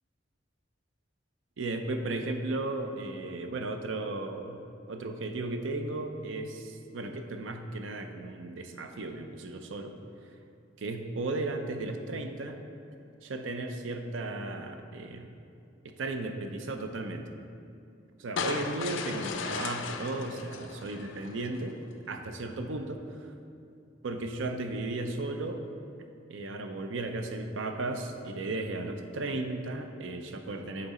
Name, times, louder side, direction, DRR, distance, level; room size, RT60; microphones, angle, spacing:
voice 1, 1.6-4.6 4.9-10.0 10.8-12.6 13.2-15.3 15.8-17.2 18.2-21.8 22.1-23.0 24.0-25.6 26.3-30.9, right 2 dB, 90° right, 6 dB, 0.5 m, -35 dB
sound 1, 18.4-21.6, left 5 dB, 80° left, 0.4 m, -36 dB
7.3 x 3.9 x 4.1 m, 2.6 s
head